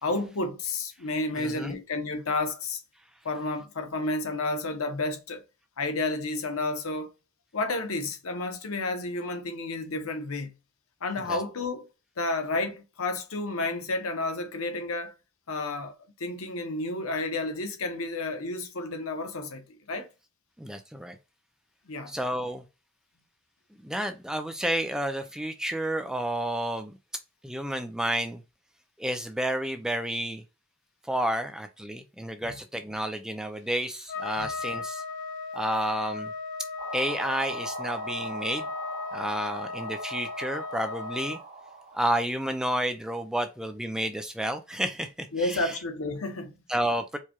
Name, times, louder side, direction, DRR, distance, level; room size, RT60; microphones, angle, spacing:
voice 1, 0.0-2.8 3.2-5.4 5.8-7.1 7.5-10.5 11.0-11.9 12.2-15.1 15.5-20.1 21.9-22.2 32.4-32.5 34.4-34.5 45.3-46.5, left 2 dB, 80° left, 0.8 m, -31 dB
voice 2, 1.3-1.8 11.3-11.4 20.6-21.2 22.1-22.6 23.8-27.0 27.4-28.4 29.0-30.4 31.1-35.0 35.5-36.3 36.9-38.7 39.1-41.4 41.9-45.8 46.7-47.2, right 1 dB, 5° right, 0.4 m, -30 dB
Trumpet, 34.1-41.4, left 4 dB, 55° left, 0.5 m, -36 dB
sound 1, 36.8-42.2, right 4 dB, 40° right, 1.4 m, -41 dB
4.6 x 2.2 x 2.9 m
head